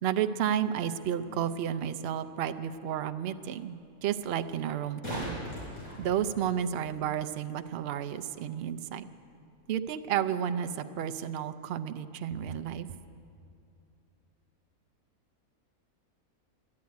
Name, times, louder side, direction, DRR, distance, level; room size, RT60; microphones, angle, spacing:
voice 1, 0.0-5.4 6.0-9.1 9.7-12.9, right 9 dB, 65° right, 10 dB, 0.6 m, -32 dB
sound 1, 4.7-6.8 9.7-9.8, equal, 75° left, 5.0 m, -39 dB
12.5 x 9.6 x 9.4 m, 2.4 s
omnidirectional pair, 1.5 m